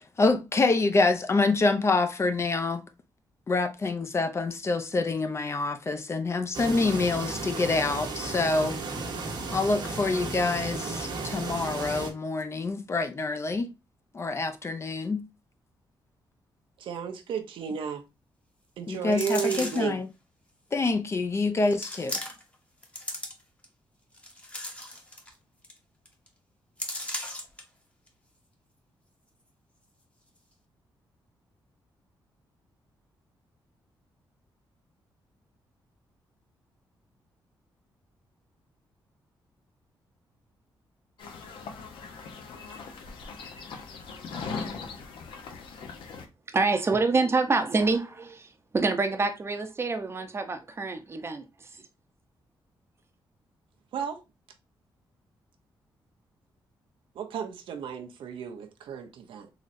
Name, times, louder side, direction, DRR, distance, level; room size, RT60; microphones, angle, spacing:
voice 1, 0.2-2.9 3.5-8.8 9.5-13.7 14.1-15.2 18.9-20.1 20.7-22.2, left 3 dB, 30° left, 0.5 m, -26 dB
sound 1, 6.5-12.1, right 3 dB, 60° right, 0.9 m, -34 dB
voice 2, 16.8-18.0 18.8-20.0 53.9-54.2 57.1-59.5, right 7 dB, 85° right, 0.6 m, -33 dB
sound 2, 19.1-20.0 20.7-20.8 21.7-22.5 22.8-23.6 24.1-25.3 25.6-25.8 26.1-26.3 26.8-27.6 28.1-28.2, left 1 dB, 15° left, 0.9 m, -36 dB
sound 3, 41.2-46.2, left 4 dB, 80° left, 0.8 m, -40 dB
voice 3, 46.5-48.5 48.7-51.5, right 3 dB, 30° right, 0.7 m, -26 dB
3.9 x 3.0 x 2.6 m
cardioid pair, 95°, 9 cm